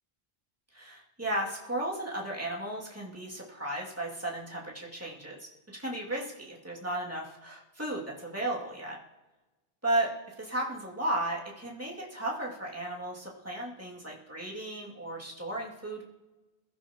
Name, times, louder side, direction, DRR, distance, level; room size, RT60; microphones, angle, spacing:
voice 1, 0.7-9.0 9.8-16.0, right 1 dB, 15° right, -4 dB, 2.3 m, -35 dB
22.0 x 12.0 x 2.9 m, 1.1 s
omnidirectional pair, 1.1 m